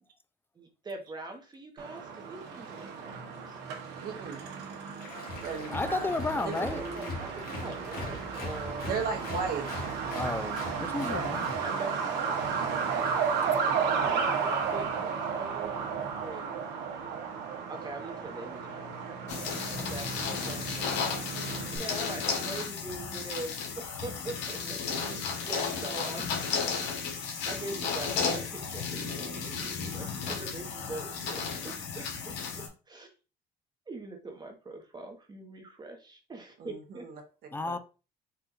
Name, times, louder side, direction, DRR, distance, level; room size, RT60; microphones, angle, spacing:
voice 1, 0.6-3.8 6.3-8.9 11.6-12.3 12.6-13.1 13.7-16.5 17.7-19.0 19.8-21.0 21.7-26.3 27.2-33.1 33.9-37.1, right 2 dB, 25° right, 1.0 m, -43 dB
Truck, 1.8-21.8, right 6 dB, 85° right, 1.0 m, -33 dB
voice 2, 4.0-4.4 5.4-6.1 6.4-6.6 7.5-7.7 8.8-9.7 11.0-11.3 13.0-13.1 24.6-25.3 36.6-37.2 37.6-37.8, right 4 dB, 60° right, 1.2 m, -36 dB
Applause, 5.0-11.7, left 3 dB, 60° left, 1.6 m, -41 dB
voice 3, 5.7-6.8 10.1-11.6 37.5-37.8, left 2 dB, 10° left, 0.4 m, -32 dB
sound 1, 19.3-32.7, left 5 dB, 90° left, 1.2 m, -34 dB
4.4 x 2.5 x 3.9 m
cardioid pair, 110°, 17 cm